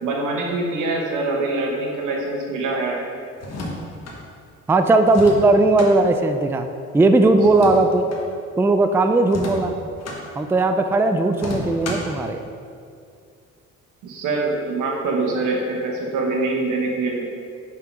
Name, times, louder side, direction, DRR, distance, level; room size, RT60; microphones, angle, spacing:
voice 1, 0.0-3.0 14.0-17.2, right 3 dB, 85° right, 0 dB, 1.3 m, -24 dB
sound 1, 3.4-4.2 5.1-5.9 7.4-8.2 9.3-10.2 11.3-12.2, left 2 dB, 55° left, 1.3 m, -32 dB
voice 2, 4.7-6.7 6.9-8.1 8.6-9.8 10.4-12.4, right 2 dB, 10° right, 7 dB, 0.3 m, -17 dB
5.7 x 4.8 x 5.2 m, 2.4 s
cardioid pair, 90°, 30 cm